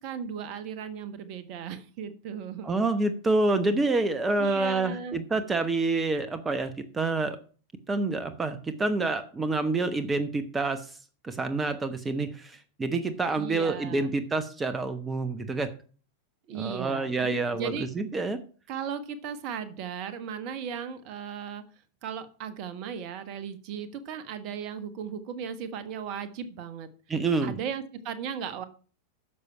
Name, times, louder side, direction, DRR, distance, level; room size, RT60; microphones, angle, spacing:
voice 1, 0.0-2.7 4.4-5.2 13.3-14.1 16.5-17.9 18.7-21.6 22.0-26.9 27.4-28.6, right 7 dB, 40° right, 12 dB, 1.3 m, -36 dB
voice 2, 2.6-7.4 7.9-10.9 11.2-15.7 16.5-18.4 27.1-27.6, right 3 dB, 15° right, 11 dB, 1.1 m, -27 dB
11.0 x 6.9 x 5.7 m, 0.39 s
figure-of-eight pair, 90°, 0 cm